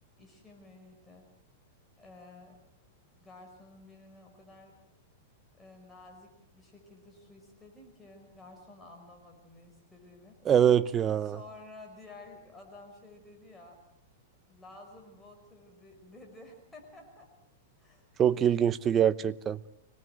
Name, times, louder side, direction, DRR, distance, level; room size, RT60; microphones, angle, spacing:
voice 1, 0.2-1.3 2.0-2.6 3.1-4.7 5.5-10.4 11.2-13.8 14.5-17.3 17.8-18.0 18.3-18.6 19.7-19.8, left 2 dB, 10° left, 5.1 m, -52 dB
voice 2, 10.5-11.4 18.2-19.6, right 9 dB, 25° right, 0.8 m, -24 dB
25.0 x 19.0 x 7.9 m
hypercardioid pair, 130°, 0 cm